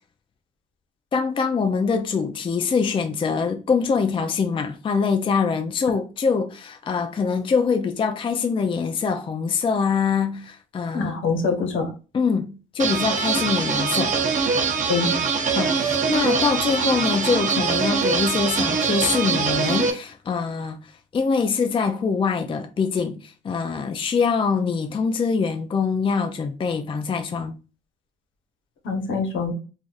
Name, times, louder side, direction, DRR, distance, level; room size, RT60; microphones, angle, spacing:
voice 1, 1.1-11.1 12.1-14.1 15.5-20.8 21.1-27.5, left 5 dB, 25° left, 0.4 m, -24 dB
voice 2, 10.9-11.9 14.8-15.1 28.8-29.5, left 4 dB, 75° left, 1.0 m, -24 dB
sound 1, 12.8-19.9, right 5 dB, 40° right, 0.7 m, -23 dB
3.8 x 2.5 x 2.4 m
cardioid pair, 90°, 20 cm